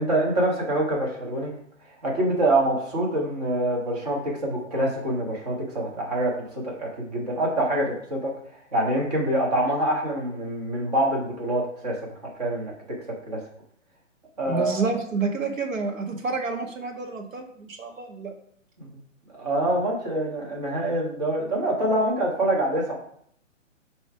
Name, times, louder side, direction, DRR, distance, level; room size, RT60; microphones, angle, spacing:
voice 1, 0.0-1.5 2.0-8.3 8.7-12.0 12.2-12.7 13.3-13.4 14.4-14.9 18.8-19.0 19.3-22.9, right 1 dB, 30° right, -2 dB, 1.5 m, -25 dB
voice 2, 14.5-18.3, right 4 dB, 85° right, 3 dB, 1.5 m, -29 dB
7.3 x 3.2 x 4.8 m, 0.66 s
hypercardioid pair, 175°, 38 cm